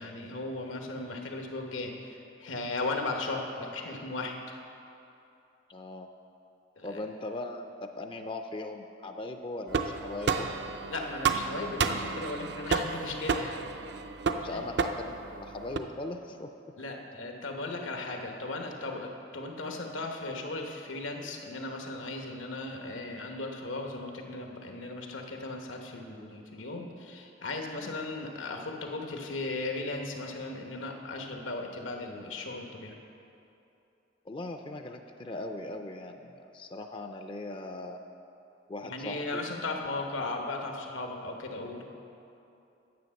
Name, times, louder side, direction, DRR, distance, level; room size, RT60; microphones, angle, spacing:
voice 1, 0.0-4.3 6.8-7.0 10.9-13.6 14.5-14.6 16.8-33.0 38.8-42.0, left 2 dB, 90° left, 2 dB, 1.2 m, -37 dB
voice 2, 5.7-6.1 6.8-10.5 13.9-14.0 14.3-16.5 27.8-28.0 34.3-38.0 38.7-39.4, left 2 dB, 25° left, 6 dB, 0.4 m, -39 dB
sound 1, 9.7-15.8, right 5 dB, 60° right, 0.5 m, -31 dB
9.5 x 7.7 x 6.4 m, 2.8 s
head